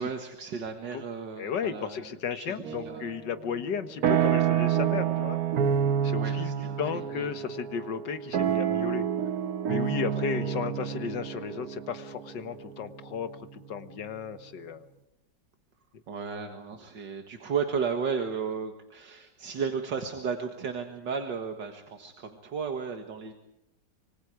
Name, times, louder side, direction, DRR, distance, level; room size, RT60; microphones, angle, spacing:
voice 1, 0.0-3.1 6.2-7.3 16.1-23.3, right 6 dB, 80° right, 5 dB, 2.4 m, -34 dB
voice 2, 1.4-5.4 6.0-9.1 9.7-14.8, left 7 dB, 75° left, 10 dB, 2.0 m, -34 dB
sound 1, 2.6-3.2 3.6-13.6, right 9 dB, 60° right, 1.4 m, -28 dB
26.5 x 24.5 x 4.9 m, 0.85 s
omnidirectional pair, 1.9 m